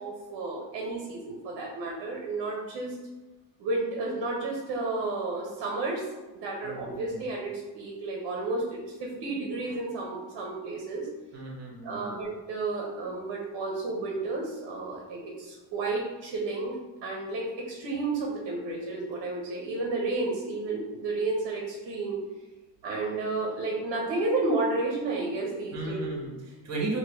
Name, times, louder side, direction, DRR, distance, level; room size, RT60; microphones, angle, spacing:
voice 1, 0.0-2.9 3.6-6.0 6.3-11.1 11.8-16.7 17.0-22.2 22.8-26.0, right 3 dB, 65° right, -1 dB, 1.0 m, -32 dB
voice 2, 6.6-7.2 11.3-12.2 25.7-27.0, right 2 dB, 35° right, -2 dB, 1.3 m, -35 dB
4.7 x 2.9 x 3.0 m, 1.2 s
cardioid pair, 140°, 44 cm